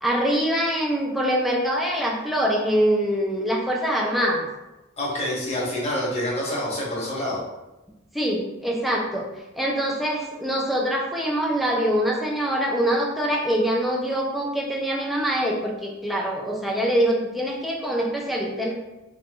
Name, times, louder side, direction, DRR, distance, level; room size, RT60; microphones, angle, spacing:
voice 1, 0.0-4.5 8.1-9.3 9.6-18.7, equal, ahead, -2 dB, 0.4 m, -24 dB
voice 2, 5.0-7.4, left 1 dB, 35° left, -4 dB, 0.9 m, -27 dB
2.6 x 2.4 x 3.1 m, 1.0 s
head